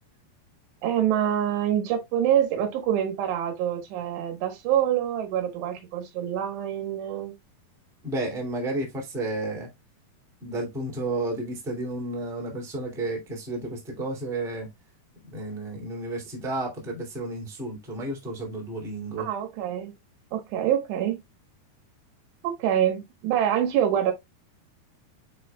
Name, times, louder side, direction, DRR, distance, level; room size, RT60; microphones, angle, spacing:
voice 1, 0.8-7.3 19.2-19.9 20.3-21.2 22.4-24.1, right 10 dB, 85° right, 3.5 m, -26 dB
voice 2, 8.0-9.7 10.4-14.7 15.2-19.3, right 2 dB, ahead, 1.4 m, -32 dB
9.4 x 4.3 x 2.3 m
omnidirectional pair, 4.8 m